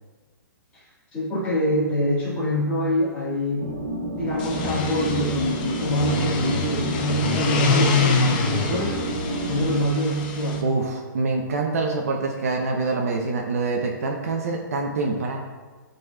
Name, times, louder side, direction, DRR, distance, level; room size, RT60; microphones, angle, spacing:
voice 1, 1.1-3.7 4.1-9.0 9.4-10.9, equal, 10° left, -8 dB, 1.8 m, -25 dB
sound 1, 3.6-9.8, right 1 dB, 65° right, 1.4 m, -29 dB
sound 2, 4.3-10.6, left 5 dB, 25° left, 0.5 m, -26 dB
voice 2, 10.6-15.4, right 3 dB, 45° right, 1 dB, 0.8 m, -25 dB
11.0 x 4.1 x 2.3 m, 1.4 s
hypercardioid pair, 170°, 11 cm